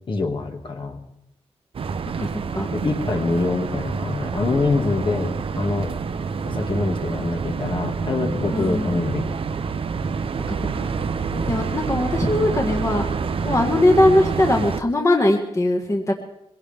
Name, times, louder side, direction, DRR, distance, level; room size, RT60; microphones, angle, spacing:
voice 1, 0.1-1.0 2.7-5.9 6.5-9.3 11.3-11.5, left 3 dB, 45° left, 3 dB, 2.0 m, -25 dB
sound 1, 1.7-14.8, right 5 dB, 55° right, 0.8 m, -27 dB
voice 2, 2.2-2.7 8.5-9.0 10.5-10.9 11.5-13.1 13.4-16.1, left 1 dB, 25° left, 2 dB, 1.8 m, -20 dB
23.0 x 17.5 x 3.5 m, 0.83 s
wide cardioid pair, 120°, 11 cm